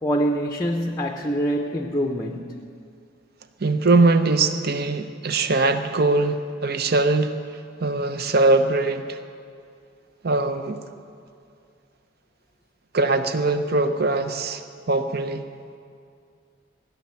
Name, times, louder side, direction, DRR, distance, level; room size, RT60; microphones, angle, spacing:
voice 1, 0.0-2.6, equal, 15° left, 2 dB, 0.6 m, -25 dB
voice 2, 3.6-7.3 7.8-9.2 10.2-10.8 12.9-15.4, right 3 dB, 50° right, 9 dB, 0.7 m, -21 dB
17.0 x 7.0 x 9.6 m, 2.4 s
head